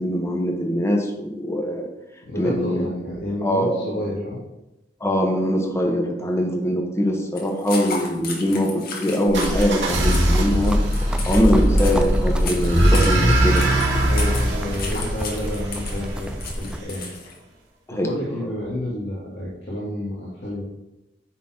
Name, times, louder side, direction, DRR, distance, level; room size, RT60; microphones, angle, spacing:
voice 1, 0.0-1.8 2.4-2.9 3.4-4.0 5.0-10.8 11.2-14.1 17.9-18.1, equal, 15° left, 1 dB, 1.3 m, -22 dB
voice 2, 2.2-4.4 11.5-11.7 14.0-16.3 16.6-17.1 17.9-20.7, left 1 dB, 75° left, -6 dB, 2.1 m, -30 dB
sound 1, 7.4-17.4, left 4 dB, 55° left, 1.7 m, -35 dB
sound 2, 9.3-16.2, right 1 dB, 90° right, 2.0 m, -20 dB
sound 3, 10.3-16.8, equal, 5° right, 0.5 m, -31 dB
9.5 x 4.1 x 4.4 m, 0.94 s
head